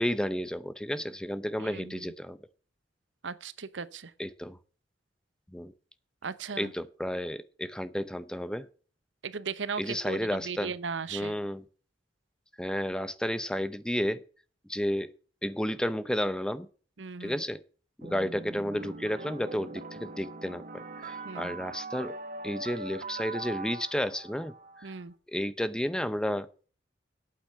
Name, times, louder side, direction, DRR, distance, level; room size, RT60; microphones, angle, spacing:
voice 1, 0.0-2.4 4.2-4.6 5.5-5.7 6.6-8.7 9.8-10.7 11.1-11.6 12.6-14.2 14.7-15.1 15.4-16.7 17.2-17.6 18.0-22.1 22.4-24.9 25.3-26.7, equal, 5° left, 0.6 m, -32 dB
voice 2, 1.6-2.1 3.2-4.1 6.2-6.7 9.2-11.3 17.0-17.4 21.2-21.5 24.8-25.1, right 5 dB, 90° right, 0.8 m, -37 dB
sound 1, 18.0-25.0, right 3 dB, 45° right, 1.3 m, -41 dB
9.0 x 8.3 x 7.4 m
head